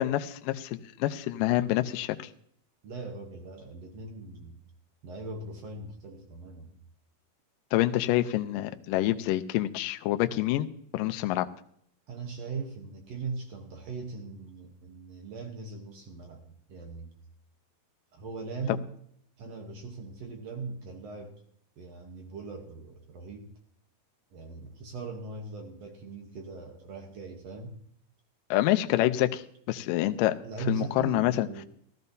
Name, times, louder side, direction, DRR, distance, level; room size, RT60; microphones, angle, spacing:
voice 1, 0.0-2.3 7.7-10.7 10.9-11.5 28.5-30.4 30.7-31.5, left 15 dB, 80° left, 8 dB, 2.0 m, -27 dB
voice 2, 2.8-4.6 5.0-6.8 12.1-16.4 16.7-17.1 18.1-18.9 19.4-21.4 21.8-23.5 24.3-27.8 30.4-31.6, right 4 dB, 70° right, 3 dB, 1.5 m, -40 dB
16.0 x 13.0 x 2.7 m, 0.67 s
omnidirectional pair, 4.4 m